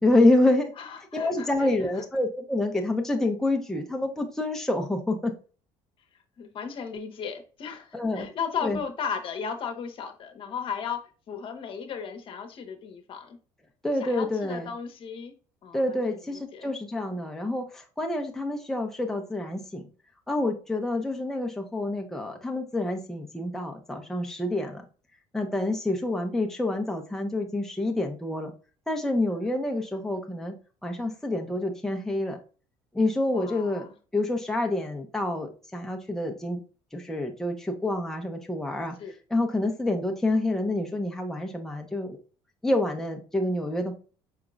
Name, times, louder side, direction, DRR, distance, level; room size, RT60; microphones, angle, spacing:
voice 1, 0.0-0.7 1.1-5.3 7.9-8.3 8.6-8.8 13.8-14.7 15.7-19.9 20.3-24.8 25.3-28.5 28.9-30.6 30.8-32.4 32.9-33.8 34.1-36.6 36.9-38.9 39.3-42.2 42.6-43.9, left 2 dB, 5° left, 2 dB, 0.8 m, -27 dB
voice 2, 0.8-1.7 6.4-13.4 14.0-15.3 15.6-16.7 33.3-33.9 39.0-39.1, left 6 dB, 50° left, 5 dB, 1.0 m, -36 dB
5.1 x 3.7 x 2.4 m, 0.36 s
supercardioid pair, 95°, 11 cm